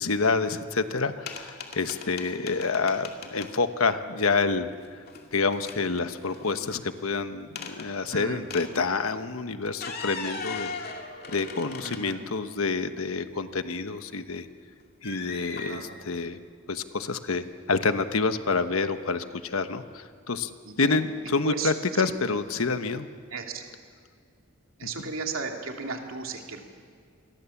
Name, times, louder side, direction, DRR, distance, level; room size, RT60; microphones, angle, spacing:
voice 1, 0.0-4.7 5.3-10.7 11.3-14.5 15.0-16.4 16.7-20.5 20.8-23.1 25.0-25.1, left 4 dB, 85° left, 9 dB, 1.2 m, -28 dB
sound 1, 1.3-3.5 4.8-5.3 5.5-6.8 7.6-7.9 8.5-8.7 9.7-12.4 13.0-13.1 15.0-15.7, left 4 dB, 50° left, 2.4 m, -38 dB
voice 2, 8.1-8.5 11.8-12.2 15.7-16.0 20.7-21.0 21.4-21.7 22.0-22.2 23.3-23.6 24.8-26.6, right 4 dB, 75° right, 2 dB, 2.8 m, -35 dB
28.0 x 22.5 x 7.2 m, 2.1 s
head